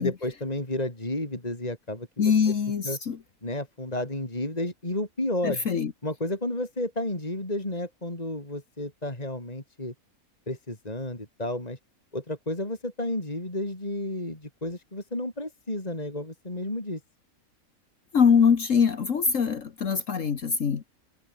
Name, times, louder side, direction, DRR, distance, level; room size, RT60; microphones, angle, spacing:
voice 1, 0.0-2.1 2.8-3.0 3.4-5.6 6.0-9.9 10.5-11.8 12.1-17.0, left 1 dB, 25° left, 4.3 m, -32 dB
voice 2, 2.2-3.2 5.4-5.9 18.1-20.8, left 6 dB, 65° left, 1.7 m, -23 dB
omnidirectional pair, 1.5 m